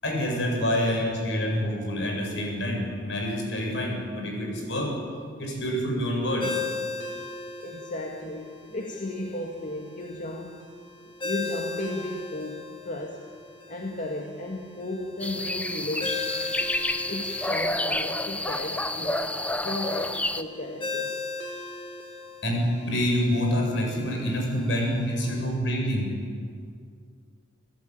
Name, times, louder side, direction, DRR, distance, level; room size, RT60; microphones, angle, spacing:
voice 1, 0.0-4.9 5.4-6.6 22.4-26.1, equal, 70° left, 1 dB, 7.4 m, -27 dB
Ringtone, 6.4-25.5, left 4 dB, 25° left, 4.4 m, -38 dB
voice 2, 7.6-10.6 11.2-13.3 13.7-16.2 17.1-21.2, left 1 dB, 45° left, 1 dB, 2.0 m, -34 dB
sound 1, 15.2-20.4, left 1 dB, 5° left, 0.8 m, -29 dB
29.5 x 17.0 x 9.4 m, 2.2 s
head